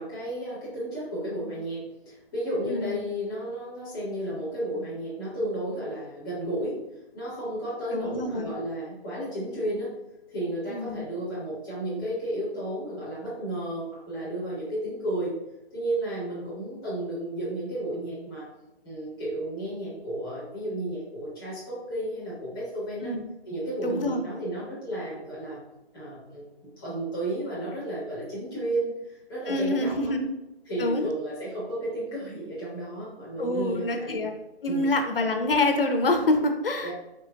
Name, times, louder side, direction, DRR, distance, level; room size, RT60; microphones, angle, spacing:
voice 1, 0.0-6.8 7.1-9.9 10.3-15.3 15.7-18.5 18.8-23.1 23.4-25.6 25.9-30.1 30.7-34.1 34.7-34.9 36.8-36.9, right 1 dB, 5° left, -9 dB, 0.4 m, -33 dB
voice 2, 2.6-3.0 7.9-8.5 10.7-11.1 23.0-23.2 23.8-24.2 29.5-30.3 30.8-31.1 33.4-34.3 34.6-36.9, left 2 dB, 60° left, 5 dB, 0.5 m, -26 dB
3.9 x 3.0 x 2.3 m, 0.93 s
figure-of-eight pair, 145°, 32 cm